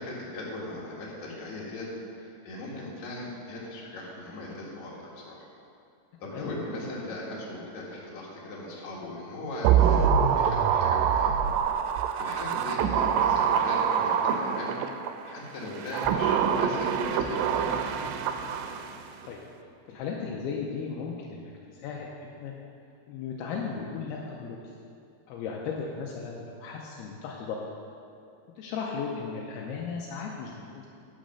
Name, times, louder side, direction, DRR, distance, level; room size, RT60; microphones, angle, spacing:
voice 1, 0.0-5.5 6.2-11.3 12.2-14.8 15.3-17.7, left 2 dB, 50° left, -5 dB, 2.8 m, -39 dB
sound 1, 9.7-15.1 15.7-19.0 19.3-19.4, right 8 dB, 90° right, 2.7 m, -25 dB
sound 2, 13.6-13.9 16.0-18.7, right 2 dB, 15° right, 0.6 m, -43 dB
voice 2, 19.9-22.5 23.1-24.6 25.3-27.6 28.6-30.9, left 5 dB, 80° left, -1 dB, 2.6 m, -36 dB
10.5 x 6.4 x 6.4 m, 2.6 s
omnidirectional pair, 4.7 m